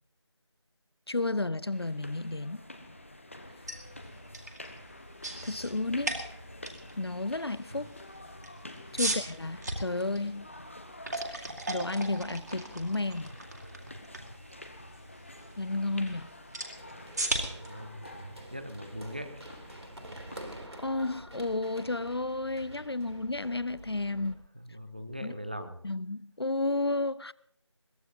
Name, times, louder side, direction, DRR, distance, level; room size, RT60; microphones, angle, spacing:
voice 1, 1.1-2.6 5.4-6.2 7.0-7.9 8.9-10.5 11.3-13.3 15.6-16.3 20.8-24.4 25.2-25.3 25.8-27.3, left 2 dB, 55° left, 0.5 m, -32 dB
sound 1, 1.7-20.7, left 1 dB, 25° left, 1.0 m, -49 dB
sound 2, 3.5-19.4, right 2 dB, 35° right, 2.1 m, -39 dB
Run, 16.6-24.3, right 1 dB, 65° right, 3.0 m, -48 dB
voice 2, 17.3-19.5 24.5-25.8, equal, 20° right, 0.7 m, -41 dB
22.0 x 18.0 x 2.8 m
figure-of-eight pair, 170°, 15 cm